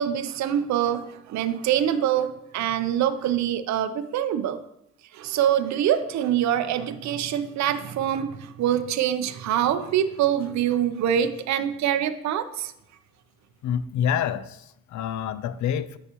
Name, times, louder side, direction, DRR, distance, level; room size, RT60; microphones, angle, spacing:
voice 1, 0.0-4.6 5.1-12.7, right 10 dB, 65° right, 10 dB, 0.5 m, -25 dB
voice 2, 13.6-16.0, left 8 dB, 70° left, 15 dB, 0.5 m, -27 dB
8.0 x 5.4 x 2.9 m, 0.81 s
cardioid pair, 90°, 30 cm